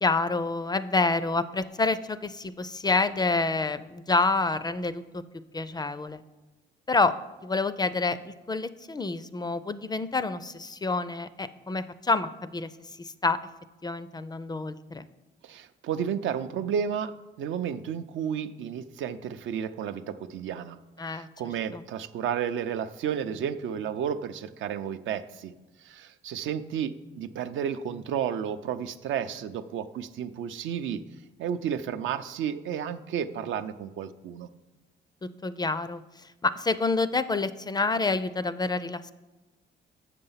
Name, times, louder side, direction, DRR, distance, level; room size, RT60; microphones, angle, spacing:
voice 1, 0.0-5.2 5.5-6.2 6.9-7.2 7.4-12.7 13.0-13.4 13.8-15.1 21.0-21.3 21.7-21.8 35.2-39.1, left 3 dB, 20° left, 14 dB, 0.4 m, -28 dB
voice 2, 15.4-20.8 21.1-25.5 25.8-31.0 31.4-34.5, right 8 dB, 75° right, 10 dB, 0.5 m, -32 dB
7.0 x 6.7 x 5.6 m, 1.1 s
cardioid pair, 90°, 20 cm